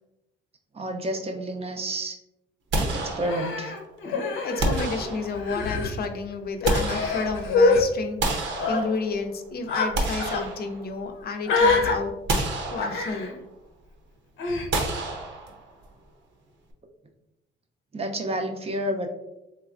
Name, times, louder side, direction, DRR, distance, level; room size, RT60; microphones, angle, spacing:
voice 1, 0.7-2.2 2.8-3.7 17.9-19.1, right 1 dB, 30° right, 4 dB, 0.5 m, -30 dB
sound 1, 2.7-3.8 4.6-5.6 6.3-7.6 8.2-9.3 9.7-11.2 11.6-11.7 12.3-13.3 14.7-15.8, right 2 dB, 70° right, 0.7 m, -29 dB
Human voice, 3.2-5.0 5.3-5.9 6.6-7.8 8.5-8.8 9.7-9.9 10.2-10.4 11.4-11.9 12.8-13.3 14.4-14.7, left 3 dB, 85° left, 0.7 m, -24 dB
voice 2, 4.4-12.1 12.7-13.4, left 4 dB, 50° left, 6 dB, 0.5 m, -31 dB
3.3 x 3.0 x 2.4 m, 0.92 s
cardioid pair, 90°, 20 cm